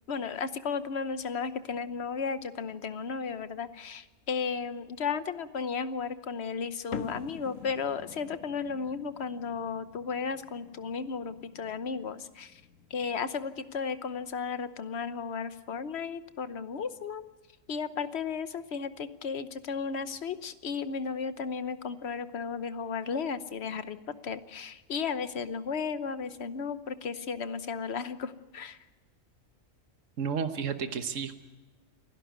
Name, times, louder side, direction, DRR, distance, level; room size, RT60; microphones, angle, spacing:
voice 1, 0.1-12.6 12.9-17.2 17.7-24.0 24.2-28.8, left 5 dB, 55° left, 12 dB, 1.2 m, -34 dB
sound 1, 6.9-13.6, left 7 dB, 80° left, 1.3 m, -46 dB
voice 2, 30.2-31.4, right 6 dB, 75° right, 8 dB, 1.5 m, -32 dB
29.0 x 11.5 x 9.4 m, 1.2 s
omnidirectional pair, 1.3 m